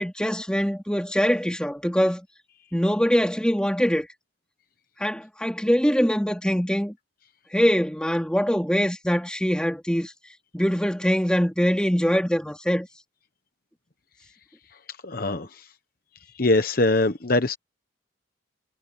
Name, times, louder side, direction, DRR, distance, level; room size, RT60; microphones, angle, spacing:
voice 1, 0.0-2.2 2.7-4.1 5.0-6.9 7.5-10.1 10.5-12.9, equal, 5° left, 3.1 m, -23 dB
voice 2, 15.0-15.6 16.4-17.6, left 2 dB, 50° left, 1.0 m, -22 dB
head